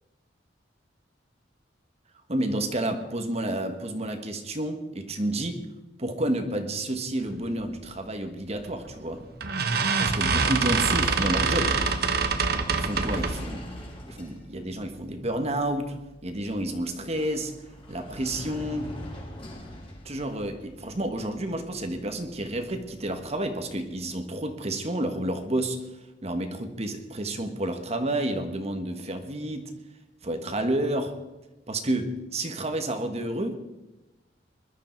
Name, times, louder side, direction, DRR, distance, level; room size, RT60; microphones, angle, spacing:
voice 1, 2.3-5.6 6.0-9.2 10.0-11.8 12.7-13.7 14.0-17.5 17.9-18.9 20.0-25.8 26.2-29.7 30.2-31.1 31.7-33.6, right 1 dB, 35° right, 6 dB, 1.4 m, -30 dB
sound 1, 8.7-8.9 9.4-13.5, right 4 dB, 60° right, 1.2 m, -25 dB
sound 2, 10.7-23.8, equal, 30° left, 3.9 m, -44 dB
21.0 x 12.0 x 4.5 m, 1.0 s
head